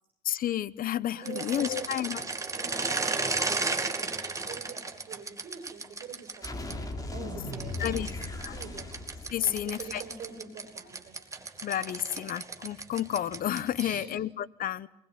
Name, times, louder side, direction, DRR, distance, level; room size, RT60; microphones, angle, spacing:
voice 1, 0.2-2.2 7.8-8.1 8.4-8.6 9.3-10.0 11.6-14.9, left 11 dB, 55° left, 18 dB, 1.0 m, -31 dB
sound 1, 1.2-6.7 7.5-14.0, right 3 dB, 20° right, 2.5 m, -34 dB
voice 2, 1.2-1.9 2.5-8.1 8.5-8.9 9.4-11.2 13.8-14.2, right 6 dB, 55° right, 7 dB, 5.7 m, -45 dB
sound 2, 6.4-10.1, left 2 dB, 20° left, 3.9 m, -38 dB
26.0 x 20.5 x 9.5 m, 0.80 s
cardioid pair, 110°, 17 cm